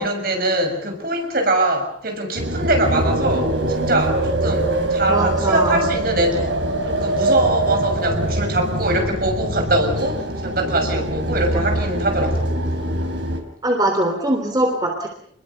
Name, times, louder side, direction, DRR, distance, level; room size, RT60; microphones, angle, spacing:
voice 1, 0.0-6.6 6.8-12.5, right 1 dB, 50° right, 4 dB, 6.4 m, -22 dB
sound 1, 2.4-13.4, right 1 dB, 70° right, 4.8 m, -23 dB
voice 2, 5.1-5.8 13.6-15.1, right 1 dB, 20° right, 3 dB, 3.3 m, -21 dB
28.5 x 21.5 x 6.8 m, 0.66 s
head